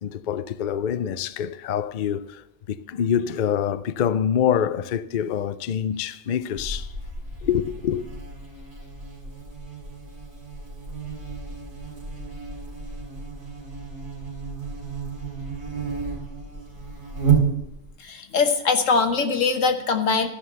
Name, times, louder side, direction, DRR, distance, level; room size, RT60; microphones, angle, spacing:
voice 1, 0.0-6.9 7.4-8.0, left 9 dB, 55° left, 0.5 m, -26 dB
Buzz, 6.6-18.0, right 6 dB, 55° right, 3.1 m, -31 dB
voice 2, 18.0-20.3, left 4 dB, 90° left, 1.5 m, -22 dB
13.5 x 5.7 x 7.9 m
omnidirectional pair, 1.3 m